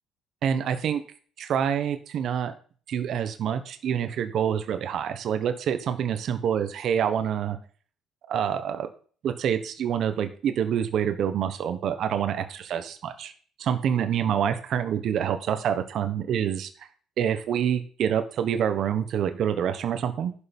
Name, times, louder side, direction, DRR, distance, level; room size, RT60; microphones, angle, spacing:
voice 1, 0.4-1.0 1.4-2.5 2.9-7.6 8.3-8.9 9.2-13.3 13.6-16.7 17.2-20.3, right 8 dB, 50° right, 8 dB, 1.3 m, -26 dB
11.5 x 6.9 x 5.4 m, 0.42 s
cardioid pair, 155°, 0 cm